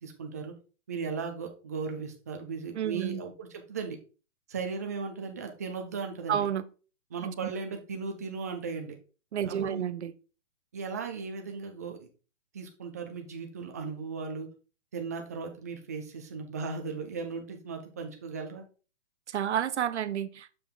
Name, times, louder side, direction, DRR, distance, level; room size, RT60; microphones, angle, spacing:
voice 1, 0.0-0.5 0.9-4.0 4.5-6.5 7.1-9.0 9.4-9.8 10.7-12.0 12.5-14.5 14.9-18.6, right 5 dB, 15° right, 4 dB, 0.4 m, -37 dB
voice 2, 2.7-3.2 6.3-6.6 7.2-7.5 9.3-10.1 19.3-20.5, right 9 dB, 60° right, 13 dB, 0.8 m, -30 dB
6.8 x 5.4 x 3.8 m, 0.35 s
hypercardioid pair, 155°, 38 cm